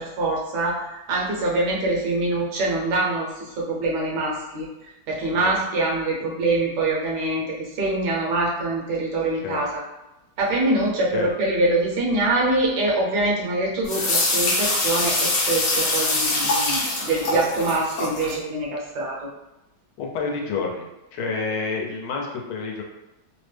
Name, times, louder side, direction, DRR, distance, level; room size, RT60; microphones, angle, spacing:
voice 1, 0.0-4.7 5.1-9.8 10.4-19.3, right 2 dB, 65° right, -3 dB, 1.2 m, -24 dB
voice 2, 1.1-1.8 5.3-5.6 9.3-9.6 11.1-11.3 17.3-17.5 20.0-20.9 21.1-22.8, left 4 dB, 90° left, 0 dB, 1.5 m, -30 dB
sound 1, 13.8-18.3, left 2 dB, 60° left, 1.0 m, -23 dB
3.5 x 2.0 x 3.1 m, 0.96 s
omnidirectional pair, 2.3 m